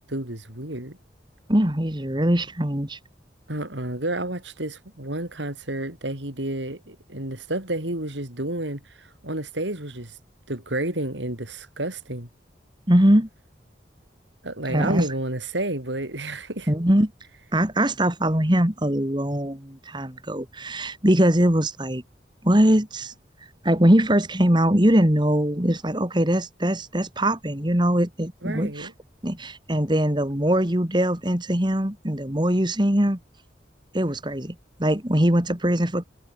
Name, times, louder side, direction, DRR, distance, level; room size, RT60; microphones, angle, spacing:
voice 1, 0.1-1.0 3.5-10.2 10.5-12.3 14.4-16.7 28.4-28.9, right 1 dB, 80° right, 5.3 m, -30 dB
voice 2, 1.5-3.0 12.9-13.3 14.7-15.1 16.7-17.1 17.5-22.0 22.4-23.1 23.6-28.9 29.2-33.2 33.9-34.5 34.8-36.0, right 1 dB, 25° right, 2.6 m, -21 dB
head